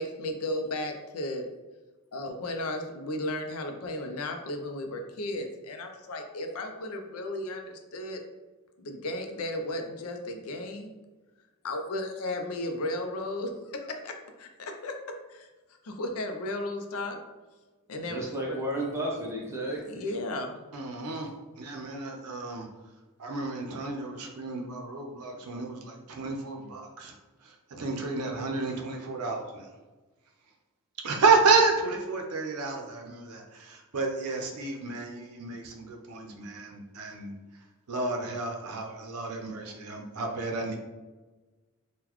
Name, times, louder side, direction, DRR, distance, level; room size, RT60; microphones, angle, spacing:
voice 1, 0.0-1.5 2.1-8.2 8.8-10.9 11.6-15.0 15.3-15.5 15.8-17.2 17.9-18.6 19.9-20.6, left 1 dB, 70° left, 4 dB, 0.5 m, -34 dB
voice 2, 18.0-20.0, right 1 dB, 10° right, -3 dB, 0.7 m, -33 dB
voice 3, 20.7-21.3 21.6-22.7 23.2-27.1 27.7-29.7 31.0-37.3 37.9-40.8, right 4 dB, 85° right, 2 dB, 0.6 m, -30 dB
3.8 x 2.2 x 3.0 m, 1.2 s
head